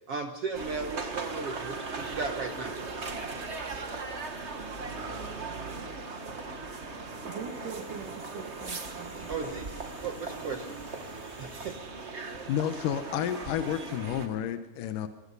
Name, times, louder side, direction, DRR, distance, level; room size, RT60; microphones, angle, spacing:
voice 1, 0.1-2.7 9.3-9.7 10.0-10.8 11.4-11.9, right 4 dB, 60° right, 5 dB, 1.8 m, -36 dB
sound 1, 0.5-14.3, right 3 dB, 35° right, 1.1 m, -38 dB
sound 2, 6.6-12.0, right 3 dB, 25° left, 7.4 m, -50 dB
voice 2, 7.2-9.6, right 6 dB, 75° right, -1 dB, 3.8 m, -41 dB
voice 3, 12.5-15.1, left 10 dB, 80° left, 8 dB, 2.6 m, -31 dB
24.0 x 21.0 x 5.4 m, 0.91 s
omnidirectional pair, 3.7 m